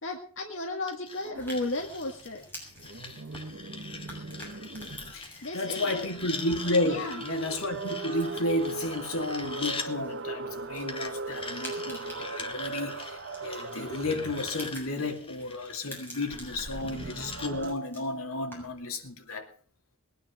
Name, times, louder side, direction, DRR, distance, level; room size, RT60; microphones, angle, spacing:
voice 1, 0.0-2.4 5.4-6.1 6.8-7.2, left 2 dB, 60° left, 2.0 m, -34 dB
sound 1, 0.9-9.9 10.9-17.5, left 4 dB, 25° left, 2.0 m, -42 dB
sound 2, 1.2-1.6 2.7-5.2 5.9-14.9 16.3-17.7, right 3 dB, 55° right, 1.2 m, -39 dB
sound 3, 1.3-18.9, left 1 dB, 10° left, 6.9 m, -50 dB
voice 2, 5.1-19.5, left 2 dB, 75° left, 2.7 m, -32 dB
21.0 x 9.9 x 6.3 m
head